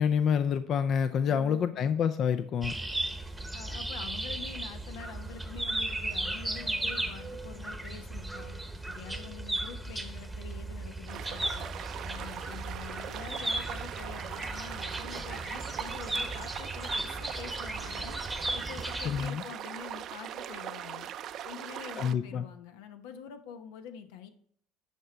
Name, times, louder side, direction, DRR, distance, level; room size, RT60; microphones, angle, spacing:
voice 1, 0.0-2.7 19.0-19.4 22.0-22.4, left 7 dB, 50° left, 10 dB, 0.5 m, -27 dB
voice 2, 1.3-1.9 3.5-8.5 8.9-11.7 12.0-18.2 18.5-21.1 21.4-24.3, left 7 dB, 80° left, 8 dB, 0.9 m, -46 dB
sound 1, 2.6-19.3, right 2 dB, 5° right, 1.0 m, -36 dB
sound 2, 11.1-22.1, right 10 dB, 55° right, 0.5 m, -40 dB
9.3 x 5.3 x 4.4 m, 0.65 s
supercardioid pair, 105°, 0 cm